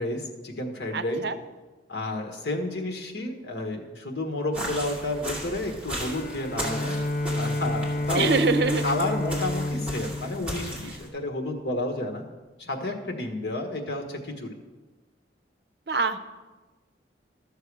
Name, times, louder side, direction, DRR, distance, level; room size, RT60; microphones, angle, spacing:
voice 1, 0.0-1.2 1.9-7.0 7.3-8.3 8.8-12.2 12.6-14.6, left 1 dB, 70° left, 2 dB, 1.4 m, -31 dB
voice 2, 0.9-1.4 8.1-9.0 15.9-16.2, right 4 dB, 60° right, 10 dB, 0.6 m, -24 dB
sound 1, 4.5-11.1, equal, 5° right, 2.0 m, -36 dB
Bowed string instrument, 5.9-11.4, left 1 dB, 50° left, 0.6 m, -30 dB
12.5 x 6.8 x 4.8 m, 1.2 s
head